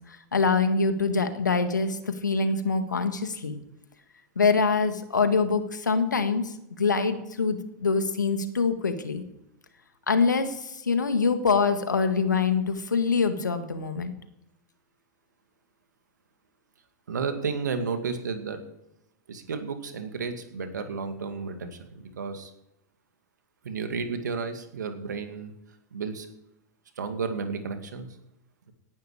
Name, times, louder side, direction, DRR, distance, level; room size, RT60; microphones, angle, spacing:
voice 1, 0.3-3.6 4.3-9.2 10.1-14.1, left 4 dB, 90° left, 9 dB, 1.7 m, -25 dB
voice 2, 17.1-18.6 19.3-22.5 23.6-25.5 25.9-26.3 27.0-28.1, right 5 dB, 80° right, 7 dB, 2.3 m, -32 dB
18.0 x 11.5 x 5.0 m, 0.87 s
hypercardioid pair, 100°, 10 cm